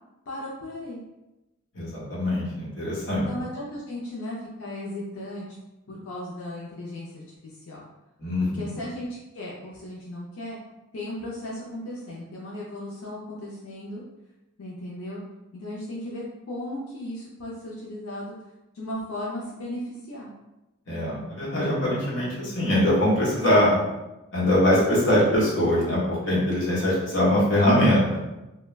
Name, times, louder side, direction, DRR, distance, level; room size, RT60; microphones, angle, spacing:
voice 1, 0.3-1.0 3.0-5.4 5.9-7.9 8.4-10.6 10.9-14.0 14.6-15.2 15.5-18.3 18.7-20.3, left 1 dB, 90° left, -5 dB, 0.5 m, -36 dB
voice 2, 1.7-3.3 8.2-8.6 20.9-23.8 24.3-28.0, left 1 dB, 60° left, -6 dB, 0.9 m, -22 dB
2.3 x 2.1 x 3.1 m, 0.97 s
head